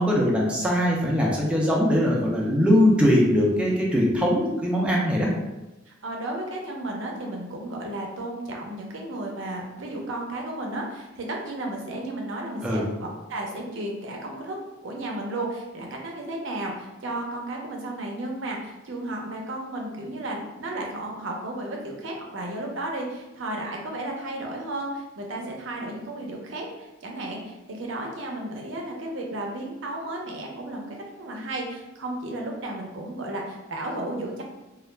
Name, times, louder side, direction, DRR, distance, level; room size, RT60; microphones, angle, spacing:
voice 1, 0.0-5.3 12.6-12.8, equal, 5° right, -4 dB, 0.4 m, -21 dB
voice 2, 5.9-14.6 14.8-34.4, right 1 dB, 70° right, 0 dB, 0.5 m, -33 dB
2.3 x 2.1 x 3.2 m, 1.0 s
head